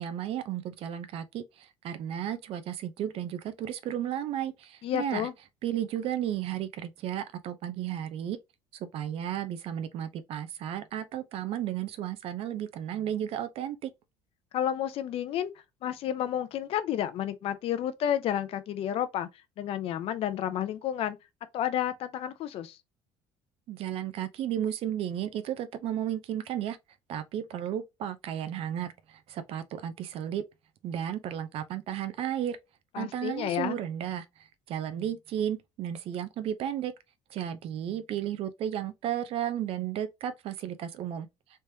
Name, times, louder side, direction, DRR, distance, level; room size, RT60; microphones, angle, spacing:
voice 1, 0.0-5.3 5.6-8.4 8.7-13.9 23.7-26.8 27.1-30.4 30.8-32.6 33.0-34.2 34.7-36.9 37.3-41.3, right 10 dB, 60° right, 0.6 m, -33 dB
voice 2, 4.8-5.3 14.5-15.5 15.8-19.3 19.6-21.2 21.5-22.8 32.9-33.8, left 10 dB, 55° left, 0.6 m, -31 dB
3.4 x 3.1 x 2.7 m
cardioid pair, 120°, 11 cm